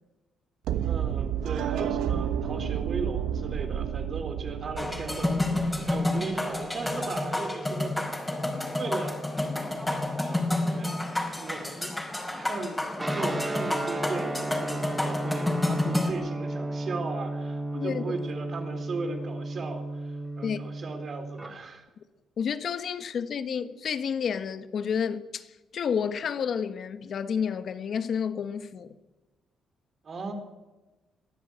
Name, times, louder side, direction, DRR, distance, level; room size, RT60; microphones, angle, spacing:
sound 1, 0.6-6.6, right 9 dB, 85° right, 1.1 m, -31 dB
voice 1, 0.8-8.2 8.7-9.2 10.2-11.0 11.4-11.9 12.4-21.9 30.0-30.3, right 3 dB, 45° right, 3.8 m, -37 dB
sound 2, 4.8-16.1, left 2 dB, 10° left, 4.8 m, -30 dB
Guitar, 13.0-21.5, right 2 dB, 15° right, 4.8 m, -34 dB
voice 2, 22.4-28.9, left 7 dB, 55° left, 1.3 m, -30 dB
22.0 x 13.0 x 8.9 m
cardioid pair, 90°, 0 cm